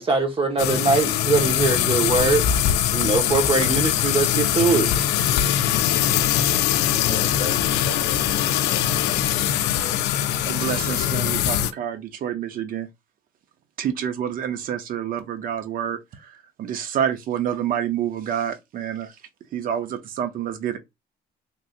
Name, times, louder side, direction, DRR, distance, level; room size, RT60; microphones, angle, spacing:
voice 1, 0.0-2.4 2.9-4.9, right 4 dB, 30° right, 1.1 m, -21 dB
sound 1, 0.6-11.7, left 11 dB, 80° left, 0.4 m, -22 dB
voice 2, 6.8-10.0, left 2 dB, 35° left, 1.4 m, -37 dB
voice 3, 10.5-12.9 13.8-19.2 19.5-20.8, right 9 dB, 55° right, 0.7 m, -28 dB
3.3 x 2.7 x 2.4 m
cardioid pair, 110°, 17 cm